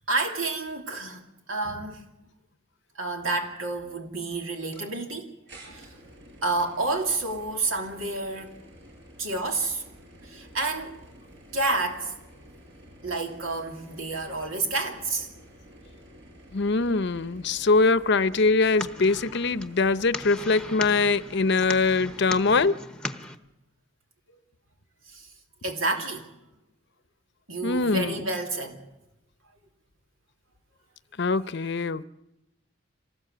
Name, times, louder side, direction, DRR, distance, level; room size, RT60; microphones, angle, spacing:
voice 1, 0.1-1.2 1.5-2.0 2.9-5.3 5.6-5.9 6.4-8.5 9.2-9.8 10.2-11.0 11.5-12.1 13.0-15.3 25.1-25.3 25.6-26.3 27.5-28.8, right 2 dB, 85° right, 2.9 m, -29 dB
sound 1, 4.7-4.8 5.5-22.7, equal, 60° right, 7.1 m, -50 dB
voice 2, 16.5-22.8 27.6-28.2 31.2-32.0, left 3 dB, 55° left, 0.7 m, -23 dB
sound 2, 18.3-23.4, left 1 dB, 5° left, 1.0 m, -38 dB
26.0 x 19.0 x 7.9 m
head